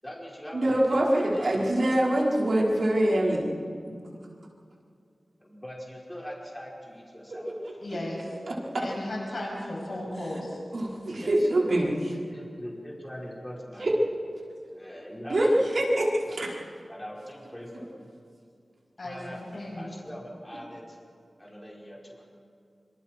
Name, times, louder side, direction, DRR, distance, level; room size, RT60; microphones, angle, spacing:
voice 1, 0.0-1.9 2.1-2.3 5.4-7.6 11.1-12.0 12.3-13.9 14.7-16.4 16.9-18.1 19.0-19.4 19.8-21.0 21.4-22.2, equal, 10° left, -4 dB, 5.2 m, -42 dB
voice 2, 0.5-3.5 3.9-4.0 10.7-11.9 13.8-13.9 15.3-15.5 15.7-16.5, right 1 dB, 65° right, -4 dB, 4.9 m, -24 dB
voice 3, 7.8-8.4 8.8-10.6 19.0-19.9, left 1 dB, 60° left, -3 dB, 7.6 m, -35 dB
26.5 x 26.5 x 4.6 m, 2.3 s
wide cardioid pair, 90°, 0 cm